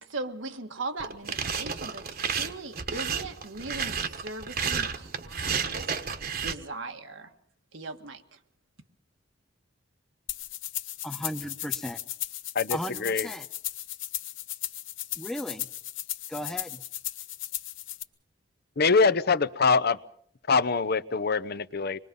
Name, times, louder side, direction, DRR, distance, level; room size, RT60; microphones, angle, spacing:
voice 1, 0.0-5.8 6.4-7.3 7.7-8.4, right 3 dB, 85° right, 5 dB, 1.8 m, -39 dB
sound 1, 1.0-6.5, right 6 dB, 55° right, 1.4 m, -31 dB
sound 2, 10.3-18.0, left 13 dB, 85° left, 1.1 m, -36 dB
voice 2, 11.0-12.0 12.7-13.5 15.2-15.7 16.3-16.8, equal, ahead, 8 dB, 1.0 m, -35 dB
voice 3, 12.5-13.3 18.8-20.0 20.5-22.0, left 4 dB, 55° left, 15 dB, 0.8 m, -24 dB
26.0 x 21.5 x 5.4 m, 0.62 s
head